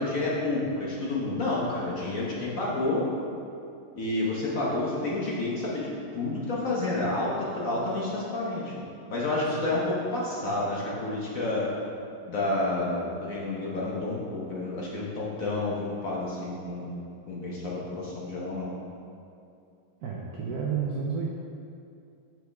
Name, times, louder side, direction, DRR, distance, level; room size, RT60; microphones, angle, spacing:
voice 1, 0.0-3.1 3.9-11.7 12.2-18.7, left 2 dB, 50° left, -5 dB, 1.2 m, -30 dB
voice 2, 20.0-21.3, right 6 dB, 70° right, -3 dB, 0.9 m, -31 dB
8.0 x 6.1 x 3.4 m, 2.5 s
omnidirectional pair, 2.3 m